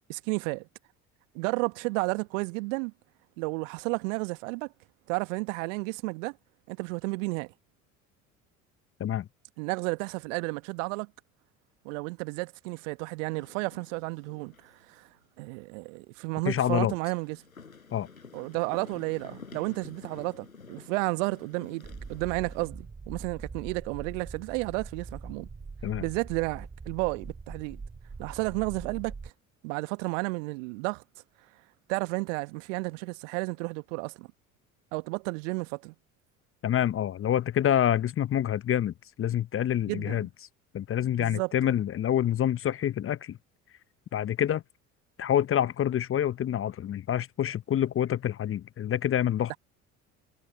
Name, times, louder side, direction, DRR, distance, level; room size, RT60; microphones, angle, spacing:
voice 1, 0.1-0.7 1.3-2.9 3.4-4.7 5.1-6.4 6.7-7.5 9.6-11.1 11.8-15.1 15.4-17.4 18.3-25.5 26.0-27.8 28.2-29.3 29.6-31.0 31.9-34.3 34.9-35.9 39.9-40.3 41.2-41.7, right 28 dB, 65° right, 1.4 m, -32 dB
sound 1, 13.3-14.9 15.1-15.2 16.6-22.7, left 5 dB, 90° left, 7.9 m, -50 dB
voice 2, 16.5-16.9 17.9-18.1 25.8-26.1 36.6-40.3 40.7-43.4 44.1-44.6 45.2-49.6, left 10 dB, 30° left, 0.8 m, -27 dB
sound 2, 21.8-29.3, right 4 dB, 20° right, 3.5 m, -42 dB
figure-of-eight pair, 60°, 40 cm